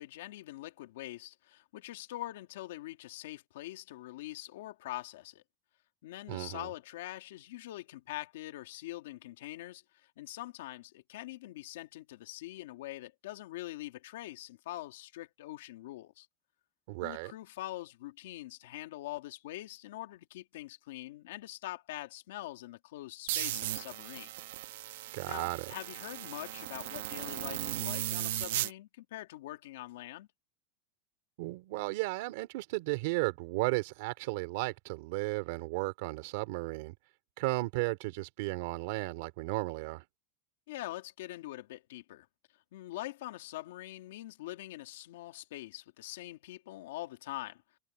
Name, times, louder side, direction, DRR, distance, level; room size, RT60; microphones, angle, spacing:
voice 1, 0.0-5.4 6.0-16.3 17.0-24.3 25.2-30.3 40.7-42.3 42.7-47.6, left 16 dB, 85° left, 2.4 m, -44 dB
voice 2, 6.3-6.7 16.9-17.3 25.1-25.7 31.4-36.9 37.4-40.0, right 23 dB, 55° right, 3.1 m, -34 dB
sound 1, 23.3-28.7, right 15 dB, 80° right, 1.2 m, -37 dB
supercardioid pair, 175°, 0 cm